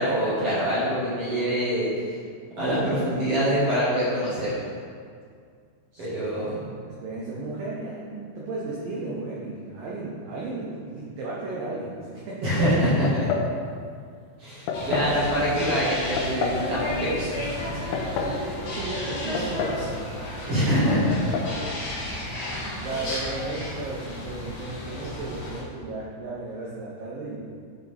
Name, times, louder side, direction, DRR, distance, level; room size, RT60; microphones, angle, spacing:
voice 1, 0.0-1.9 2.6-4.6 6.0-6.6 12.4-13.1 14.4-17.1 17.4-17.7 18.0-18.3 20.5-21.3 22.9-23.0, equal, 50° right, -10 dB, 2.0 m, -25 dB
voice 2, 5.9-12.8 18.2-20.9 22.6-27.4, right 2 dB, 80° right, -5 dB, 2.0 m, -35 dB
sound 1, 13.1-13.5 14.7-15.2 16.2-16.7 17.7-18.4 19.4-19.9 20.1-20.2 21.1-21.5, left 4 dB, 85° left, 3.2 m, -29 dB
sound 2, 14.7-25.6, left 1 dB, 50° left, 2.1 m, -33 dB
10.5 x 6.1 x 3.5 m, 2.1 s
omnidirectional pair, 5.4 m